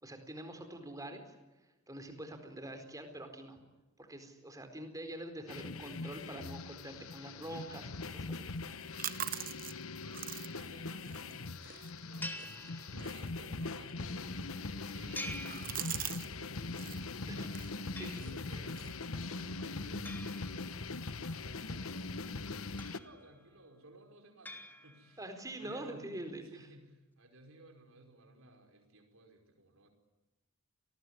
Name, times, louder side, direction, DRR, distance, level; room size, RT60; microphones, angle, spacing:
voice 1, 0.0-1.4 1.9-3.6 4.0-8.5 17.3-17.5 18.0-18.1 25.2-26.4, right 1 dB, 15° right, 7 dB, 4.4 m, -45 dB
sound 1, 5.5-23.0, left 3 dB, 70° left, 1.2 m, -41 dB
sound 2, 8.6-16.3 16.6-17.0 17.5-19.8, right 11 dB, 40° right, 1.1 m, -45 dB
voice 2, 9.2-12.5 12.9-14.3 14.7-17.9 18.2-25.2 25.6-26.1 26.4-29.9, right 2 dB, 65° right, 4 dB, 5.3 m, -57 dB
sound 3, 12.2-13.4 15.1-16.4 18.0-18.7 20.0-21.2 22.8-23.5 24.4-25.3, left 1 dB, 10° left, 3.2 m, -47 dB
29.5 x 20.0 x 10.0 m, 1.1 s
head